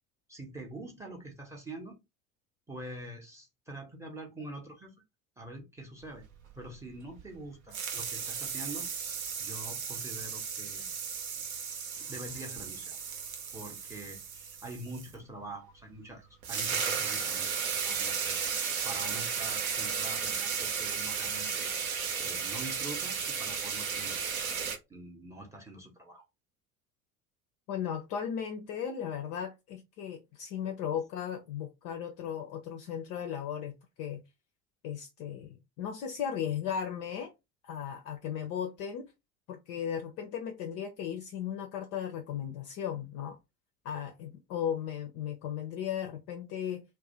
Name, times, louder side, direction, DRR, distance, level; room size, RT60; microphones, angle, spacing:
voice 1, 0.3-2.0 2.7-4.9 5.4-6.2 6.6-8.9 9.4-10.9 12.0-13.0 13.5-24.5 24.9-26.3, right 2 dB, 5° right, 0.7 m, -45 dB
sound 1, 6.2-7.5 7.7-15.1 16.1-16.2 16.4-24.8, right 6 dB, 75° right, 0.7 m, -34 dB
voice 2, 27.7-34.2 34.8-37.3 37.6-39.1 39.5-43.4 43.8-46.8, left 8 dB, 40° left, 0.4 m, -36 dB
2.3 x 2.2 x 2.8 m
figure-of-eight pair, 65°, 42 cm